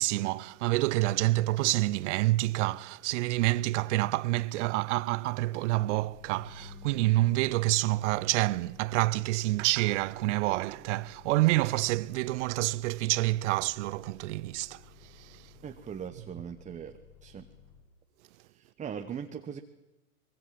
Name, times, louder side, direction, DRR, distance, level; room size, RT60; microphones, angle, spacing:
voice 1, 0.0-14.8 15.1-15.4, right 19 dB, 50° right, 0.8 m, -28 dB
Bus, 5.7-17.8, left 8 dB, 35° left, 6.6 m, -56 dB
sound 1, 6.2-9.4, left 5 dB, 65° left, 6.4 m, -51 dB
voice 2, 15.6-17.5 18.5-19.6, right 7 dB, 15° right, 1.2 m, -40 dB
24.5 x 23.0 x 7.7 m
hypercardioid pair, 120°, 44 cm